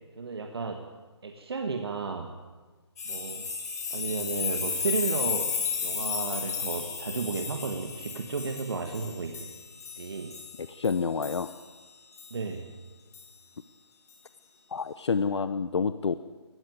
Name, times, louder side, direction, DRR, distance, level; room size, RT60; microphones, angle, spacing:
voice 1, 0.2-0.9 1.2-2.3 3.1-3.5 3.9-5.5 5.8-9.5 10.0-10.4 12.3-12.7, right 4 dB, 60° right, 5 dB, 1.8 m, -33 dB
sound 1, 3.0-11.6 12.2-12.3 13.1-13.2, left 6 dB, 35° left, 3.0 m, -34 dB
voice 2, 10.6-11.5 14.7-16.1, left 5 dB, 70° left, 13 dB, 0.8 m, -28 dB
19.0 x 14.5 x 9.5 m, 1.3 s
hypercardioid pair, 170°, 15 cm